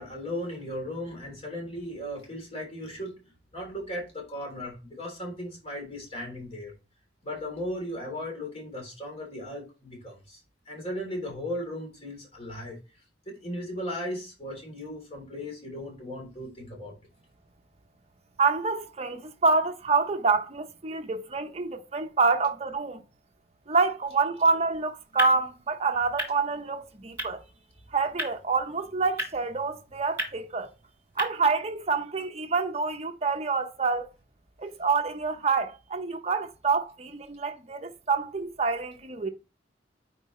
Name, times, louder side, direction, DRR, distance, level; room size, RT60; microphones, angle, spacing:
voice 1, 0.0-3.1 3.5-6.7 7.2-12.8 13.2-16.9, left 1 dB, 35° left, 3.4 m, -36 dB
voice 2, 18.4-23.0 23.7-27.4 27.9-30.7 31.2-34.1 34.6-39.3, right 4 dB, 35° right, 0.8 m, -27 dB
sound 1, 24.6-31.3, equal, 10° right, 2.1 m, -38 dB
9.6 x 4.6 x 3.1 m
head